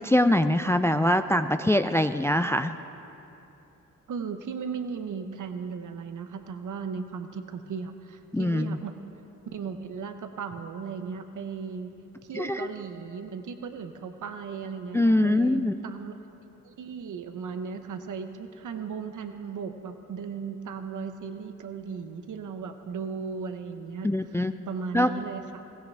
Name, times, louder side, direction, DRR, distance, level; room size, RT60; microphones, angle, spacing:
voice 1, 0.0-2.8 8.3-8.8 12.3-12.7 14.9-15.7 24.0-24.5 24.9-25.1, left 1 dB, 10° left, 9 dB, 0.4 m, -23 dB
voice 2, 4.1-9.0 9.5-11.9 12.2-16.2 16.6-24.4 24.7-25.6, right 6 dB, 65° right, 7 dB, 1.0 m, -36 dB
20.5 x 16.0 x 3.5 m, 2.9 s
cardioid pair, 60°, 33 cm